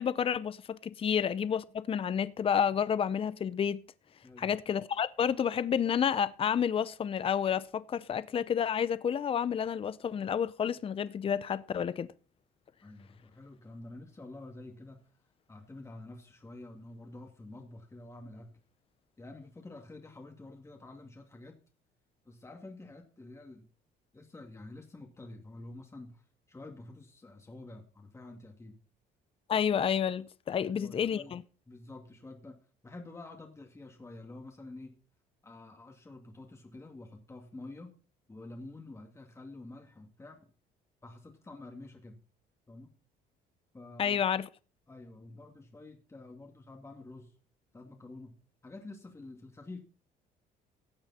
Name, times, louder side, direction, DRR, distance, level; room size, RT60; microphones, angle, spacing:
voice 1, 0.0-3.8 4.4-12.1 29.5-31.4 44.0-44.5, left 8 dB, 35° left, 0.6 m, -30 dB
voice 2, 4.2-4.5 12.8-15.0 15.5-18.6 19.2-21.6 22.2-23.7 24.1-28.8 30.6-31.3 31.7-32.6 32.8-34.9 35.4-37.9 38.3-40.4 41.0-42.2 42.7-42.9 43.7-44.2 44.9-47.3 47.7-48.3 48.6-49.8, left 2 dB, 15° left, 2.4 m, -48 dB
16.0 x 8.8 x 4.3 m
cardioid pair, 110°, 17 cm